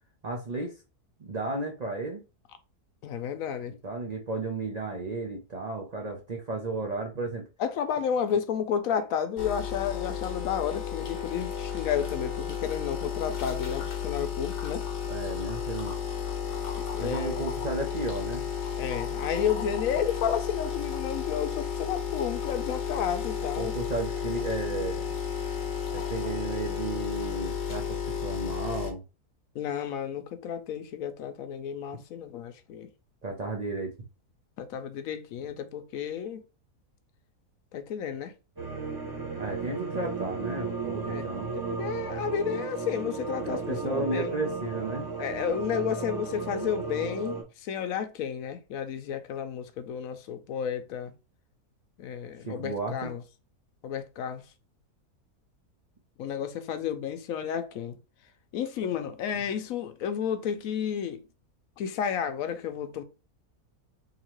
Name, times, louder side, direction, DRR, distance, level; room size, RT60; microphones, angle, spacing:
voice 1, 0.2-0.7 1.2-2.2 3.7-7.5 15.1-16.0 17.0-18.4 23.6-25.1 25.9-29.0 33.2-33.9 39.4-41.6 43.4-45.1 52.5-53.1, right 3 dB, 60° right, 0.4 m, -33 dB
voice 2, 3.0-3.7 7.6-14.8 16.7-17.4 18.8-23.7 29.5-32.9 34.6-36.4 37.7-38.3 41.1-41.3 41.7-44.3 45.2-51.1 52.0-53.2 53.8-54.4 56.2-58.0 58.5-61.2 61.8-63.0, left 8 dB, 70° left, 1.0 m, -32 dB
sound 1, 9.4-28.9, left 7 dB, 45° left, 0.8 m, -33 dB
sound 2, 38.6-47.4, right 4 dB, 20° right, 0.7 m, -34 dB
3.8 x 2.8 x 3.0 m
omnidirectional pair, 1.6 m